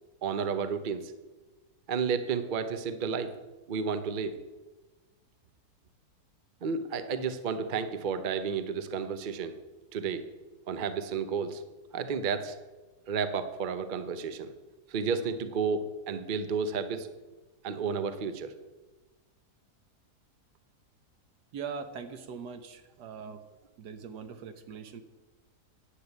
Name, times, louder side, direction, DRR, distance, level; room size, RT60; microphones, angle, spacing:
voice 1, 0.2-1.1 1.9-3.3 3.7-4.4 6.6-9.6 9.9-10.2 10.7-11.6 11.9-12.6 13.1-14.5 14.9-17.1 17.6-18.5, right 5 dB, 45° right, 10 dB, 0.6 m, -31 dB
voice 2, 21.5-23.4 23.8-25.0, right 6 dB, 80° right, 9 dB, 1.5 m, -41 dB
10.0 x 6.7 x 8.0 m, 1.2 s
omnidirectional pair, 1.8 m